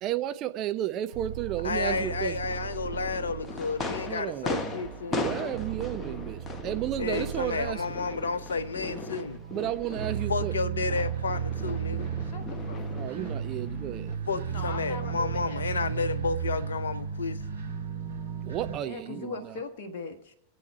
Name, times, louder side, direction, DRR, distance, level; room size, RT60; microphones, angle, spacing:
voice 1, 0.0-2.4 4.1-4.5 5.1-7.8 9.5-10.5 12.9-14.1 14.5-14.6 18.4-19.5, right 12 dB, 35° right, 0.9 m, -33 dB
sound 1, 1.1-19.7, right 3 dB, 15° right, 5.5 m, -59 dB
sound 2, 1.1-18.8, right 7 dB, 75° right, 3.2 m, -35 dB
voice 2, 1.6-5.6 7.0-9.4 10.3-12.1 14.3-17.4, left 4 dB, 70° left, 0.8 m, -31 dB
sound 3, 1.9-14.2, left 2 dB, 20° left, 1.4 m, -39 dB
voice 3, 9.9-10.5 12.2-13.0 14.5-15.6 18.8-20.3, left 4 dB, 45° left, 1.4 m, -40 dB
24.5 x 8.4 x 4.4 m
figure-of-eight pair, 90°, 0 cm